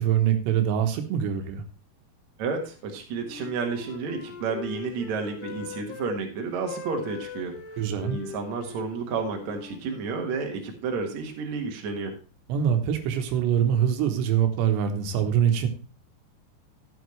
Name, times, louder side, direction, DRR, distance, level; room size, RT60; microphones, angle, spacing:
voice 1, 0.0-1.6 7.8-8.2 12.5-15.7, right 9 dB, 85° right, 6 dB, 3.3 m, -24 dB
voice 2, 2.4-7.6 8.1-12.1, right 4 dB, 55° right, 3 dB, 2.3 m, -31 dB
Wind instrument woodwind instrument, 3.2-6.1 6.6-10.5, left 5 dB, 80° left, 3.3 m, -41 dB
12.5 x 8.5 x 3.2 m, 0.35 s
omnidirectional pair, 4.8 m